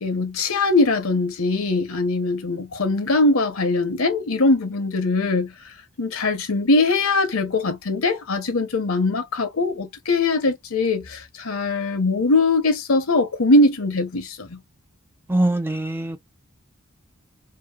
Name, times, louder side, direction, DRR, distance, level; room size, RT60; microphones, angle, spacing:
voice 1, 0.0-5.5 6.0-14.6, left 2 dB, 75° left, 0.8 m, -21 dB
voice 2, 15.3-16.2, right 1 dB, 10° right, 0.4 m, -22 dB
2.9 x 2.4 x 2.3 m
head